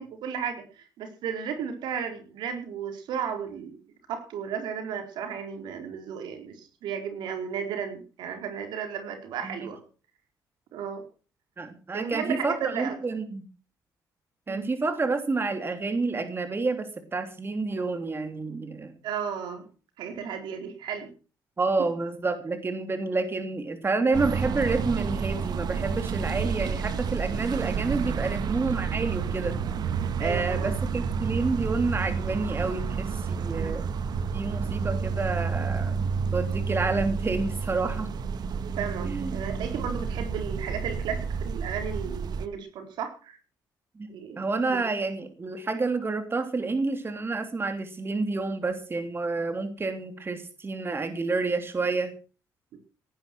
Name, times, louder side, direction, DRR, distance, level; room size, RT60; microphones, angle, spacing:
voice 1, 0.0-3.8 4.1-9.8 10.7-11.0 11.9-13.0 14.5-14.7 19.0-19.6 20.0-21.1 25.9-26.0 30.2-30.7 33.5-33.7 38.8-43.4 44.1-44.4 44.7-44.8 52.7-52.8, right 7 dB, 85° right, 6 dB, 4.3 m, -34 dB
voice 2, 11.6-13.5 14.5-18.9 21.6-29.5 30.2-33.9 34.3-35.9 36.3-38.1 39.0-39.4 44.0-44.1 44.4-52.1, right 3 dB, 30° right, 8 dB, 3.1 m, -29 dB
sound 1, 24.1-42.4, right 6 dB, 65° right, 1.4 m, -30 dB
18.5 x 10.0 x 6.2 m, 0.38 s
cardioid pair, 80°, 7 cm